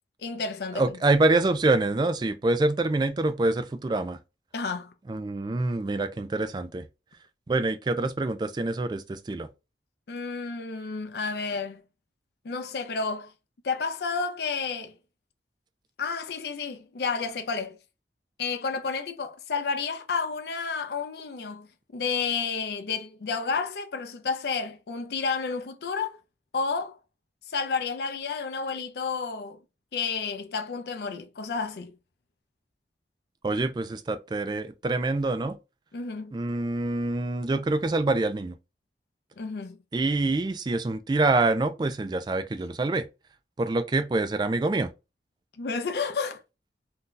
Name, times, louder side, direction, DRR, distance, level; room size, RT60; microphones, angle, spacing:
voice 1, 0.2-0.8 4.5-4.9 10.1-11.8 12.4-13.3 13.6-14.9 16.0-17.8 18.4-21.7 21.9-26.2 26.5-27.0 27.5-29.6 29.9-31.9 35.9-36.3 39.4-39.8 45.6-46.4, left 5 dB, 65° left, 0.5 m, -31 dB
voice 2, 0.7-4.2 5.1-6.9 7.5-9.5 33.4-35.6 36.3-38.5 39.9-43.1 43.6-44.9, right 2 dB, 25° right, 0.3 m, -26 dB
2.7 x 2.2 x 3.7 m
head